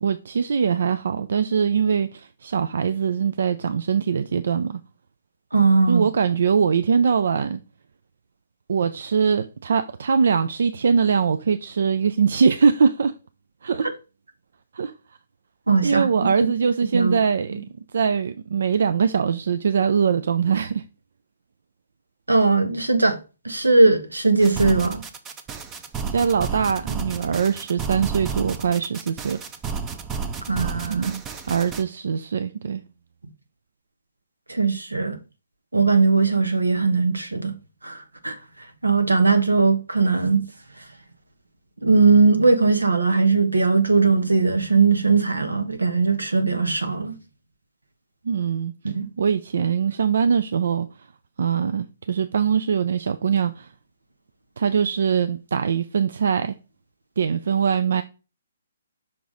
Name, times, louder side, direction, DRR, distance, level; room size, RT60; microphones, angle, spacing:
voice 1, 0.0-4.8 5.9-7.6 8.7-13.1 13.6-13.9 14.7-14.9 15.8-17.6 17.9-20.8 26.1-29.4 30.9-32.8 48.2-48.7 49.2-50.9 51.4-53.7 54.6-56.5 57.2-58.0, right 6 dB, 60° right, 0.4 m, -22 dB
voice 2, 5.5-6.1 15.7-16.0 16.4-16.5 16.9-17.2 22.3-23.2 23.4-25.0 30.5-31.1 34.5-35.2 35.7-37.5 37.8-38.0 38.2-38.3 38.8-40.4 41.8-47.1 48.8-49.1, right 4 dB, 85° right, 1.1 m, -19 dB
sound 1, 24.4-31.8, right 5 dB, 20° right, 0.7 m, -32 dB
5.8 x 4.7 x 3.9 m
figure-of-eight pair, 135°, 0 cm